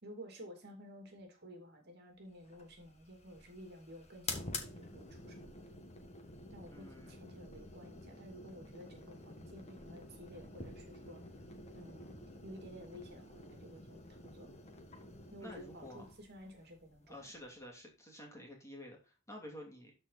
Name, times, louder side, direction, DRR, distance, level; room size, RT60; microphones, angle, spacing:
voice 1, 0.0-5.5 6.5-11.2 11.7-12.2 12.4-14.5 15.3-17.3, equal, 50° right, 3 dB, 2.7 m, -53 dB
sound 1, 2.4-17.7, left 3 dB, 30° left, 1.4 m, -49 dB
voice 2, 6.7-7.4 15.4-16.1 17.1-19.9, left 1 dB, 15° left, -1 dB, 2.7 m, -51 dB
12.5 x 4.5 x 4.1 m, 0.31 s
head